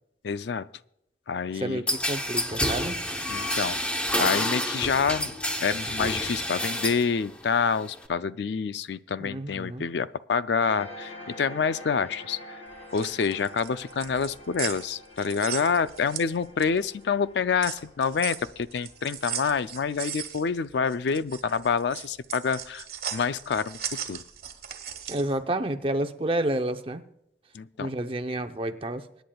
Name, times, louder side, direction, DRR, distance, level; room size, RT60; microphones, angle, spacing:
voice 1, 0.2-0.7 1.3-1.8 3.3-3.8 4.2-5.3 5.6-12.6 12.9-22.8 23.1-23.8 24.1-24.2 27.5-27.9, left 5 dB, 70° left, 14 dB, 0.4 m, -27 dB
voice 2, 1.6-3.0 9.2-9.8 25.1-27.0 27.8-29.0, right 1 dB, 30° right, 7 dB, 0.7 m, -30 dB
sound 1, 1.9-7.1 7.4-8.1, left 1 dB, 5° left, 0.8 m, -29 dB
sound 2, 10.6-19.6, equal, 35° left, 2.1 m, -46 dB
sound 3, 12.7-16.9 17.2-25.3, right 9 dB, 50° right, 1.7 m, -37 dB
25.0 x 10.5 x 2.3 m, 0.80 s
head